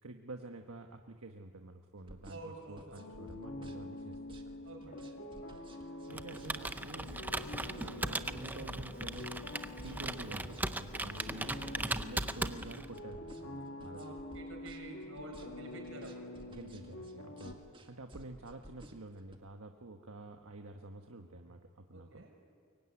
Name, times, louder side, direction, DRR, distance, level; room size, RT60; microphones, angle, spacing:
voice 1, 0.0-5.0 5.8-7.2 7.5-9.4 9.8-14.1 16.5-17.6 17.9-22.2, right 2 dB, 85° right, 4 dB, 1.4 m, -49 dB
sound 1, 2.0-19.4, right 1 dB, 25° right, 1.8 m, -55 dB
voice 2, 2.3-3.1 4.6-5.1 13.9-16.3 17.2-17.4 21.9-22.4, right 2 dB, 65° right, 1 dB, 6.9 m, -49 dB
sound 2, 3.0-17.6, left 1 dB, 60° left, 2.5 m, -47 dB
Computer keyboard, 6.1-13.0, right 2 dB, 10° right, 0.6 m, -38 dB
23.5 x 23.0 x 9.8 m, 2.1 s
head